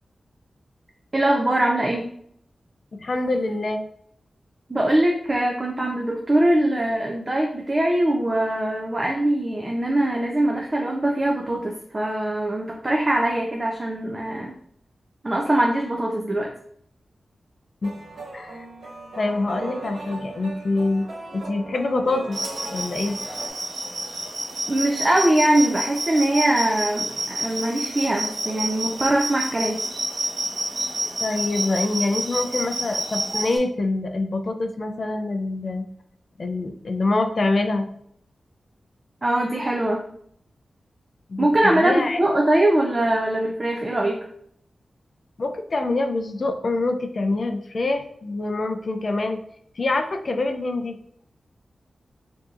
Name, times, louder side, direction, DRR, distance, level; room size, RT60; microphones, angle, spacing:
voice 1, 1.1-2.1 4.7-14.5 15.2-16.5 24.7-29.8 39.2-40.0 41.4-44.2, right 1 dB, 25° right, 0 dB, 0.4 m, -22 dB
voice 2, 2.9-3.8 17.8-18.0 18.3-18.7 19.2-21.1 21.3-22.4 22.7-23.2 31.2-35.9 36.4-37.9 41.3-42.2 45.4-49.4 49.8-51.0, left 2 dB, 45° left, 6 dB, 0.4 m, -25 dB
sound 1, 17.8-23.5, right 2 dB, 90° right, 1.2 m, -38 dB
sound 2, 22.3-33.6, right 1 dB, 65° right, 0.9 m, -29 dB
4.6 x 2.7 x 2.5 m, 0.67 s
wide cardioid pair, 170°, 0 cm